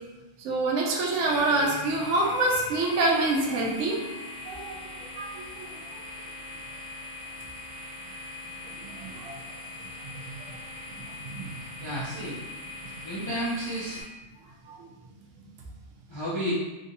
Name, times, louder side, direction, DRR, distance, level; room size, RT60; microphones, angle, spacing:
voice 1, 0.4-4.0 4.5-4.8 5.2-5.7 9.0-9.3 10.1-10.2 11.2-11.5 14.8-14.9, right 2 dB, 75° right, -2 dB, 0.9 m, -26 dB
sound 1, 1.2-14.0, left 2 dB, 45° right, 0.8 m, -41 dB
voice 2, 11.8-12.4 13.0-14.0 16.1-16.5, equal, 45° left, -8 dB, 0.3 m, -32 dB
3.2 x 2.7 x 2.6 m, 1.1 s
omnidirectional pair, 1.3 m